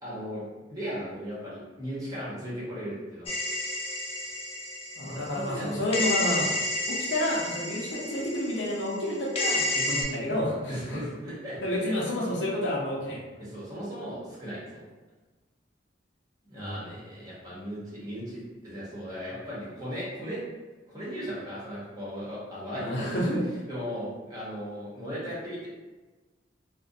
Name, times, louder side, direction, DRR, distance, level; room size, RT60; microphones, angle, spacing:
voice 1, 0.0-3.3 5.0-5.9 10.7-11.6 11.8-11.9 13.4-14.8 16.4-20.4 20.9-23.2 23.7-25.7, equal, 20° right, -8 dB, 0.8 m, -37 dB
sound 1, 3.3-5.6 5.9-10.0, left 1 dB, 35° left, 0.4 m, -31 dB
voice 2, 5.0-6.5 6.9-11.0 11.6-13.2 16.6-16.9 22.8-23.4, left 1 dB, 70° left, -4 dB, 0.7 m, -30 dB
2.4 x 2.1 x 2.6 m, 1.3 s
head